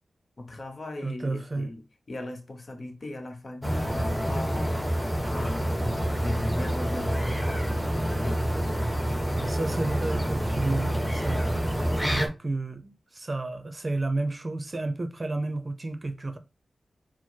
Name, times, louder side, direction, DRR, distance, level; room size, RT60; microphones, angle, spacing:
voice 1, 0.4-1.8 2.1-4.9 5.3-5.9 6.2-8.5, left 2 dB, 50° left, 0.9 m, -38 dB
voice 2, 1.0-1.7 9.3-11.7 11.9-16.4, right 2 dB, 40° right, 0.6 m, -31 dB
sound 1, 3.6-12.3, equal, 5° left, 1.2 m, -27 dB
4.4 x 2.0 x 4.5 m
wide cardioid pair, 70°, 0 cm